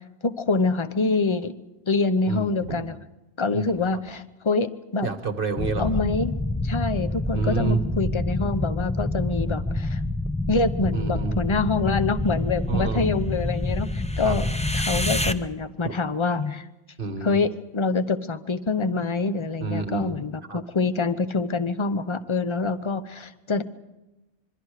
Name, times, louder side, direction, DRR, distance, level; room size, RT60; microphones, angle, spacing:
voice 1, 0.2-1.6 1.9-2.9 3.4-5.1 5.8-6.3 6.6-10.0 10.5-14.5 14.7-16.6 17.2-23.6, left 3 dB, 25° left, 12 dB, 0.8 m, -25 dB
voice 2, 2.3-2.8 3.5-3.6 5.0-5.9 7.3-7.8 10.9-11.4 12.7-13.1 14.2-14.4 15.8-15.9 17.0-17.4 19.6-20.1 20.5-20.6, right 5 dB, 45° right, 8 dB, 1.3 m, -29 dB
sound 1, 5.6-15.3, left 2 dB, 10° left, 0.3 m, -27 dB
26.5 x 23.5 x 4.9 m, 0.99 s
omnidirectional pair, 1.3 m